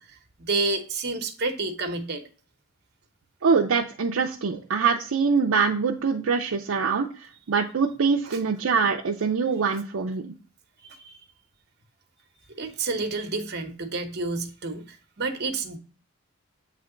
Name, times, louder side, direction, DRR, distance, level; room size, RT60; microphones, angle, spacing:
voice 1, 0.0-2.2 8.2-8.4 10.8-11.2 12.6-15.8, right 3 dB, 50° right, 6 dB, 0.9 m, -30 dB
voice 2, 3.4-10.3, right 5 dB, 65° right, 1 dB, 0.5 m, -24 dB
8.0 x 3.3 x 3.8 m, 0.39 s
head